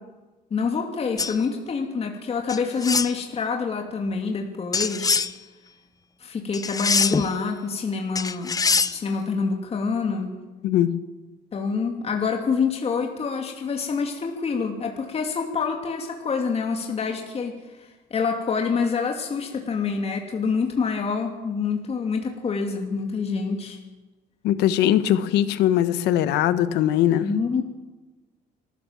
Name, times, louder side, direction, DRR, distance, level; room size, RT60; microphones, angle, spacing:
voice 1, 0.5-5.2 6.2-8.5 8.9-10.4 11.5-23.8 27.2-27.6, left 5 dB, 35° left, 2 dB, 2.7 m, -26 dB
sound 1, 1.2-1.4 2.5-3.1 4.7-5.3 6.5-7.3 8.2-9.0, left 4 dB, 20° left, 0.8 m, -23 dB
voice 2, 10.6-11.0 24.4-27.3, left 11 dB, 85° left, 12 dB, 1.4 m, -20 dB
25.0 x 14.0 x 7.5 m, 1.2 s
cardioid pair, 110°, 17 cm